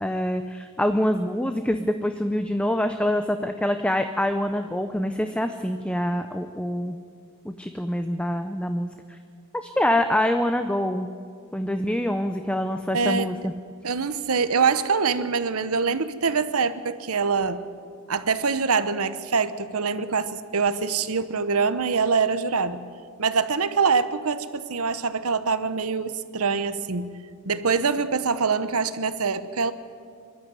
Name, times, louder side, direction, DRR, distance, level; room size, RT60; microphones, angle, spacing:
voice 1, 0.0-7.0 7.4-9.2 9.5-11.1 11.5-13.5, left 1 dB, 5° left, 8 dB, 0.6 m, -25 dB
voice 2, 12.9-13.3 13.8-17.6 18.1-22.8 23.2-27.1 27.4-29.7, right 5 dB, 80° right, 12 dB, 1.0 m, -24 dB
24.0 x 12.0 x 9.1 m, 2.2 s
head